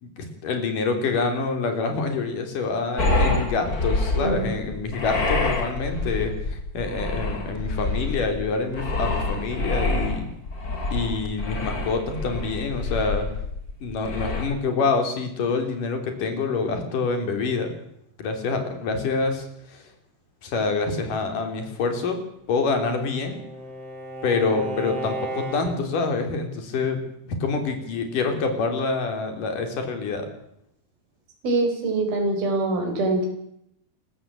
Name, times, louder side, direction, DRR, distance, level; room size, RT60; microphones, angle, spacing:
voice 1, 0.0-10.3 10.9-13.3 13.8-17.7 18.2-19.9 20.4-22.2 22.5-23.4 24.2-27.0 27.3-30.3, left 4 dB, 60° left, 6 dB, 4.8 m, -26 dB
sound 1, 3.0-14.5, left 2 dB, 25° left, 3.0 m, -27 dB
Bowed string instrument, 22.5-26.1, right 1 dB, 40° right, 5.3 m, -34 dB
voice 2, 31.4-33.3, right 2 dB, 70° right, 3 dB, 6.5 m, -24 dB
28.0 x 14.0 x 8.9 m, 0.76 s
omnidirectional pair, 4.3 m